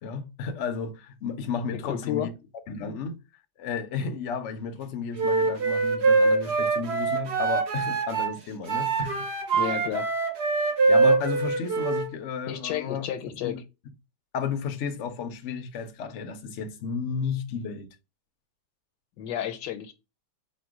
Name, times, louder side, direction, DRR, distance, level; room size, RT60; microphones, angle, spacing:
voice 1, 0.0-2.3 2.7-3.2 3.6-9.3 10.9-13.1 13.4-13.6 14.3-17.9, left 6 dB, 65° left, 0.7 m, -33 dB
voice 2, 1.8-2.3 9.5-10.1 12.5-13.6 19.2-19.9, left 10 dB, 80° left, 1.3 m, -31 dB
Wind instrument woodwind instrument, 5.2-8.4 8.7-12.1, right 4 dB, 50° right, 0.9 m, -24 dB
4.2 x 2.2 x 4.7 m
omnidirectional pair, 1.8 m